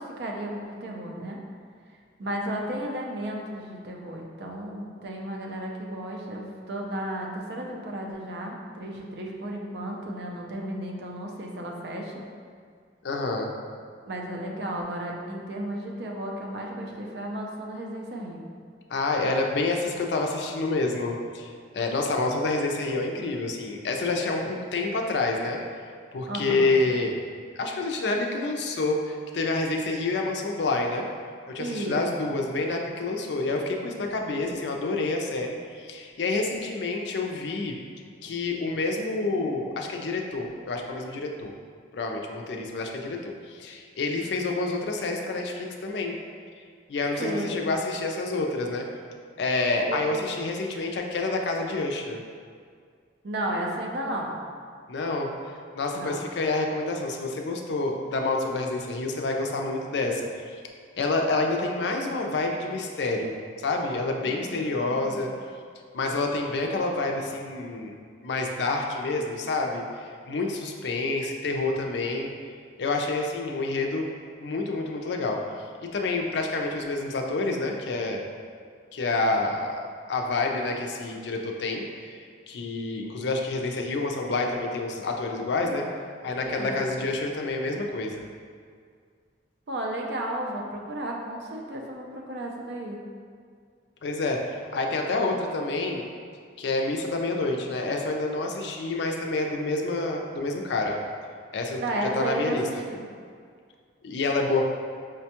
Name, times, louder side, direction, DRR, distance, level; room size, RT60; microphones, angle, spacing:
voice 1, 0.0-1.4 2.2-12.2 14.1-18.5 26.3-26.7 31.6-32.0 47.2-47.6 49.9-50.1 53.2-54.3 55.9-56.2 64.3-65.3 86.4-87.0 89.7-93.0 101.8-103.1, right 1 dB, 60° right, 0 dB, 0.5 m, -33 dB
voice 2, 13.0-13.5 18.9-25.6 26.1-27.1 27.5-31.0 31.5-37.8 38.2-41.5 41.9-46.2 46.9-48.9 49.4-52.2 54.9-55.3 55.8-60.6 61.0-65.3 65.9-67.9 68.2-72.3 72.8-74.1 74.4-75.4 75.9-78.2 78.9-79.8 80.1-85.8 86.2-88.2 94.0-96.0 96.6-101.0 101.5-102.6 104.0-104.6, left 2 dB, 65° left, 1 dB, 0.4 m, -28 dB
4.9 x 2.2 x 2.8 m, 2.1 s
head